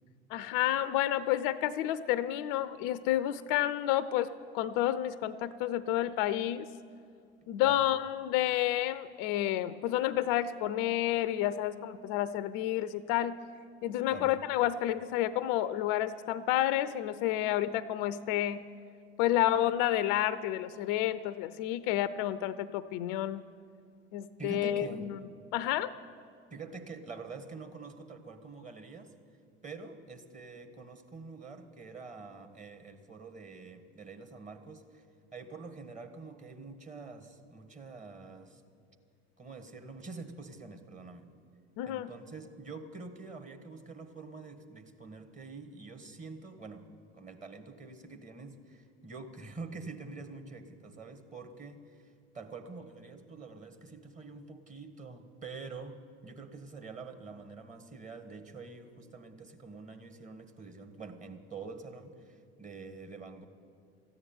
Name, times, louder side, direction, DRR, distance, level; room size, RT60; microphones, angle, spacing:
voice 1, 0.3-6.7 7.5-13.4 13.8-18.6 19.2-23.4 24.1-25.2 25.5-25.9 41.8-42.1, left 13 dB, 55° left, 16 dB, 0.6 m, -30 dB
voice 2, 24.4-25.1 26.5-29.1 29.6-35.1 35.3-38.6 39.4-41.3 41.8-63.4, right 4 dB, 25° right, 7 dB, 1.6 m, -46 dB
14.0 x 9.3 x 9.1 m, 2.3 s
figure-of-eight pair, 65°, 32 cm